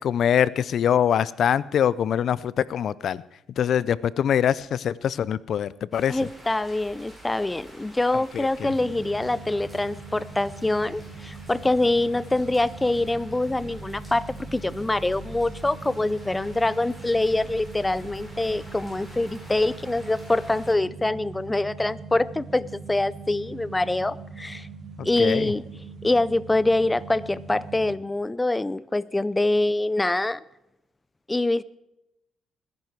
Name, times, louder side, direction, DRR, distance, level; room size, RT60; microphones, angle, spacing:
voice 1, 0.0-3.2 3.6-6.2 8.3-8.7 25.2-25.5, left 9 dB, 65° left, 20 dB, 0.5 m, -23 dB
sound 1, 5.9-20.7, equal, ahead, 6.7 m, -46 dB
voice 2, 6.1-24.7 25.0-25.6 26.0-30.4 31.3-31.6, left 2 dB, 15° left, 20 dB, 0.5 m, -25 dB
sound 2, 8.6-28.0, right 4 dB, 55° right, 3.0 m, -41 dB
21.0 x 10.5 x 4.7 m, 0.87 s
cardioid pair, 90°, 0 cm